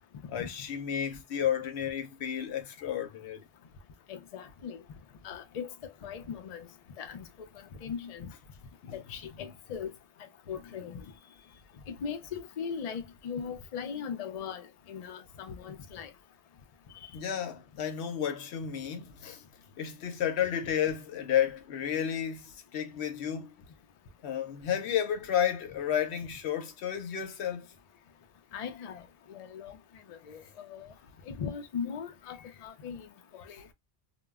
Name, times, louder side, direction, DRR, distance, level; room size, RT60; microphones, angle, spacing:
voice 1, 0.3-3.4 8.8-9.0 9.4-9.5 17.1-19.4 19.8-23.5 24.2-27.7, left 9 dB, 80° left, 0.9 m, -32 dB
voice 2, 4.1-4.8 5.2-5.7 6.0-6.7 7.0-7.3 7.8-8.3 8.9-9.9 10.5-11.0 12.0-16.1 28.5-29.0 29.3-29.8 30.1-30.8 31.3-33.1 33.3-33.6, left 7 dB, 50° left, 0.5 m, -39 dB
2.2 x 2.0 x 3.4 m
omnidirectional pair, 1.1 m